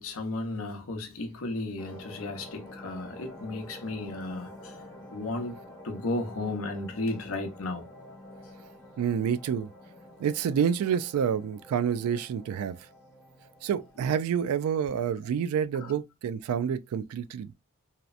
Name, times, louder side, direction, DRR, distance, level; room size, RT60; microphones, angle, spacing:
voice 1, 0.0-4.8 5.1-5.6 5.8-7.9 15.7-15.9, left 2 dB, 70° left, 0.6 m, -34 dB
sound 1, 1.8-14.6, left 1 dB, 15° left, 0.8 m, -48 dB
voice 2, 9.0-9.7 10.2-12.8 13.6-17.5, right 8 dB, 85° right, 0.3 m, -28 dB
2.7 x 2.0 x 2.4 m
head